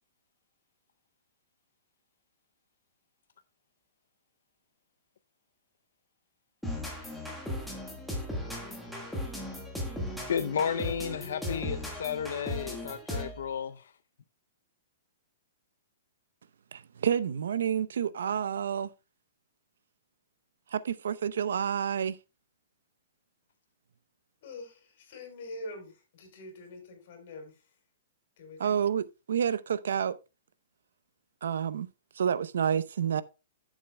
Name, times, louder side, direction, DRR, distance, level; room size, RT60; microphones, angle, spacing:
sound 1, 6.6-13.5, left 1 dB, ahead, 1.6 m, -37 dB
voice 1, 10.3-13.9, left 7 dB, 75° left, 0.6 m, -32 dB
voice 2, 16.7-18.9 20.7-22.2 28.6-30.2 31.4-31.9 32.2-33.2, right 8 dB, 80° right, 0.6 m, -29 dB
voice 3, 24.4-27.6 28.4-28.8, left 2 dB, 45° left, 3.9 m, -45 dB
12.5 x 7.4 x 2.2 m
hypercardioid pair, 165°, 0 cm